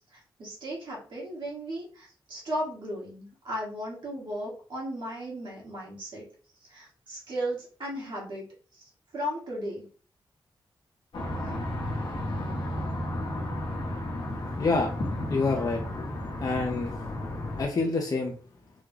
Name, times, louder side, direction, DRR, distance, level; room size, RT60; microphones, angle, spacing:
voice 1, 0.1-6.2 6.7-8.4 8.7-8.8 9.1-9.8, equal, 65° right, -4 dB, 1.6 m, -35 dB
sound 1, 11.1-17.6, left 1 dB, 65° left, 1.0 m, -33 dB
voice 2, 14.6-14.9 15.3-15.8 16.4-16.9 17.6-18.4, left 3 dB, 45° left, 1 dB, 0.6 m, -27 dB
3.6 x 2.2 x 3.2 m, 0.40 s
cardioid pair, 90°, 9 cm